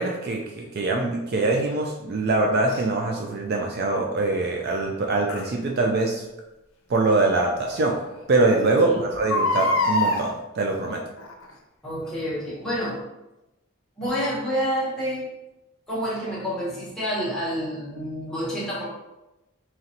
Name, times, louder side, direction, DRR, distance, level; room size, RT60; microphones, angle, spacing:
voice 1, 0.0-6.2 6.9-7.9 8.3-11.0, right 2 dB, 50° right, 1 dB, 0.4 m, -23 dB
Crying sobbing, 2.7-2.8 5.3-5.5 7.1-7.2 7.7-7.8 8.0-8.1 9.1-10.2 11.2-11.5 12.1-12.2, left 2 dB, 85° left, 0.6 m, -24 dB
voice 2, 11.8-13.0 14.0-15.3 15.9-18.9, equal, 5° left, -8 dB, 1.2 m, -28 dB
3.9 x 3.1 x 2.8 m, 0.96 s
head